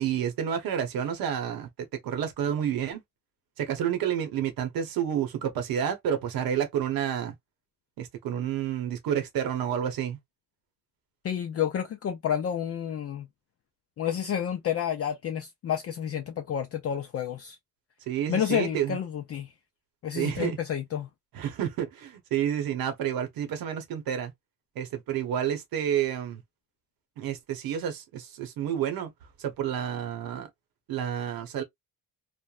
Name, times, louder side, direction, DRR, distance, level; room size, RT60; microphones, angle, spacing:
voice 1, 0.0-3.0 3.6-7.3 8.0-10.2 18.1-19.0 20.1-20.6 21.3-24.3 24.7-26.4 27.2-29.1 29.4-30.5 30.9-31.6, right 9 dB, 85° right, 1.0 m, -30 dB
voice 2, 11.2-13.3 14.0-17.6 18.3-19.5 20.0-21.1, left 9 dB, 45° left, 0.4 m, -30 dB
3.2 x 2.1 x 2.4 m
cardioid pair, 130°, 34 cm